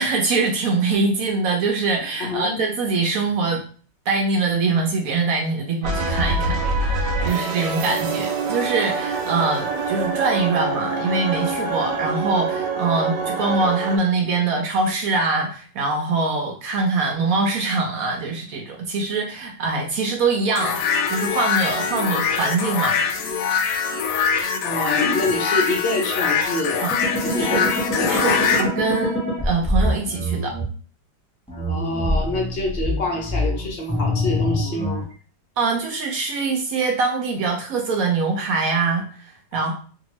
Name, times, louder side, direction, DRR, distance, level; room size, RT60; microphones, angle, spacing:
voice 1, 0.0-3.6 4.1-20.8 21.1-23.3 26.8-26.9 27.3-27.6 28.1-30.5 35.6-39.7, right 3 dB, 70° right, 1 dB, 0.9 m, -23 dB
voice 2, 2.2-2.6 24.6-26.9 27.2-28.5 31.5-35.0, left 2 dB, 55° left, 0 dB, 0.7 m, -26 dB
sound 1, 5.8-14.0, right 3 dB, 85° right, 1.2 m, -25 dB
sound 2, 20.6-28.6, left 6 dB, 80° left, 1.2 m, -23 dB
sound 3, 26.9-30.6 31.5-35.0, left 1 dB, 10° left, 0.4 m, -25 dB
2.8 x 2.6 x 3.0 m, 0.41 s
omnidirectional pair, 1.9 m